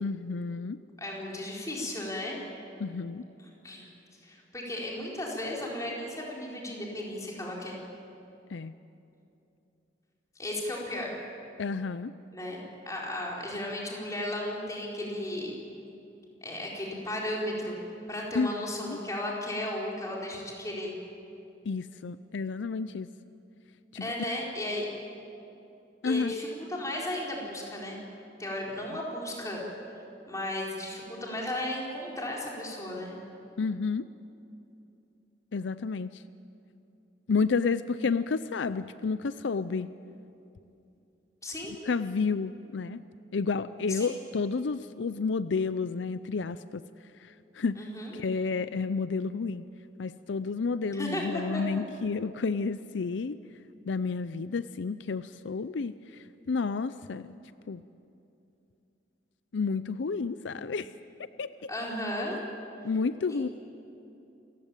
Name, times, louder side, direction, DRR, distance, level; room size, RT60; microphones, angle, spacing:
voice 1, 0.0-0.8 2.8-3.2 8.5-8.7 11.6-12.1 18.3-18.5 18.8-19.0 21.6-23.1 23.9-24.1 26.0-26.3 33.6-34.1 35.5-36.2 37.3-39.9 41.8-43.0 43.3-46.8 47.2-47.9 48.1-49.6 50.0-53.4 53.8-57.4 57.7-57.8 59.5-60.9 61.4-61.7 62.8-63.5, left 4 dB, 80° left, 14 dB, 0.5 m, -30 dB
voice 2, 1.0-2.4 3.6-3.9 4.2-7.8 10.4-11.1 12.3-12.6 12.9-15.5 16.4-17.8 18.1-20.9 23.9-24.9 26.0-28.0 28.4-29.6 30.3-33.1 41.4-41.7 43.9-44.1 47.7-48.1 50.9-51.6 61.7-62.4 63.3-63.5, left 1 dB, 20° left, -3 dB, 4.4 m, -35 dB
27.5 x 15.5 x 9.0 m, 2.8 s
head